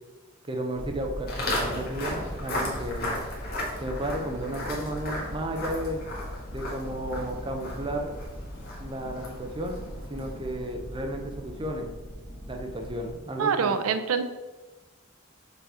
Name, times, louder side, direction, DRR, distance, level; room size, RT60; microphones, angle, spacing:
voice 1, 0.5-3.2 3.8-6.0 6.5-8.1 8.8-9.8 10.1-11.9 12.5-13.8, right 1 dB, 25° right, 3 dB, 0.7 m, -33 dB
sound 1, 0.7-13.1, equal, 75° left, 1.5 m, -40 dB
Walk footsteps, 1.3-10.5, left 1 dB, 45° left, 1.6 m, -36 dB
voice 2, 13.4-14.2, right 6 dB, 85° right, 10 dB, 0.5 m, -25 dB
5.4 x 3.8 x 5.0 m, 1.2 s
head